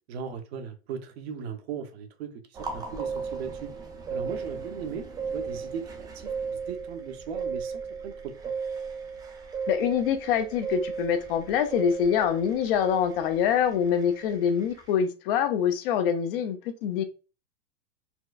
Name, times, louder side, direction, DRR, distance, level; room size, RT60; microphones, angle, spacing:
voice 1, 0.1-3.7 4.1-5.1 5.3-8.5, right 6 dB, 70° right, 0.8 m, -38 dB
sound 1, 2.5-14.9, right 5 dB, 10° right, 0.4 m, -36 dB
voice 2, 9.7-17.0, left 8 dB, 60° left, 0.6 m, -25 dB
4.3 x 2.1 x 2.4 m
supercardioid pair, 140°, 32 cm